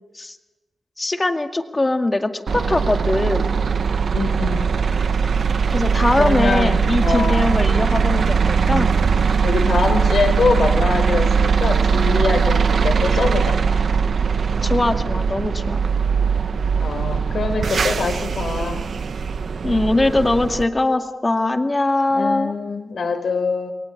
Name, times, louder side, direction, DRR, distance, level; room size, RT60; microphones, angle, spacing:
voice 1, 1.0-3.6 5.7-8.9 14.6-15.8 19.6-22.6, left 2 dB, 25° left, 6 dB, 2.2 m, -21 dB
sound 1, 2.5-20.6, right 6 dB, 65° right, 1.2 m, -20 dB
voice 2, 4.1-4.7 6.2-7.5 9.4-13.6 16.8-18.8 22.1-23.7, left 4 dB, 70° left, 8 dB, 5.1 m, -23 dB
29.5 x 23.5 x 8.5 m, 1.1 s
wide cardioid pair, 130°, 0 cm